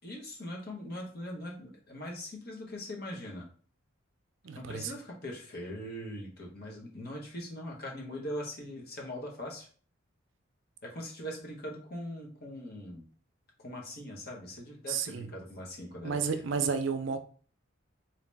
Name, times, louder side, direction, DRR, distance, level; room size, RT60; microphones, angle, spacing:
voice 1, 0.0-3.4 4.5-9.7 10.8-13.0 13.6-16.2, left 1 dB, 50° left, -1 dB, 1.2 m, -41 dB
voice 2, 4.4-4.9 14.9-15.3 16.0-17.2, right 6 dB, 65° right, 8 dB, 0.5 m, -31 dB
3.8 x 2.8 x 3.4 m, 0.42 s
head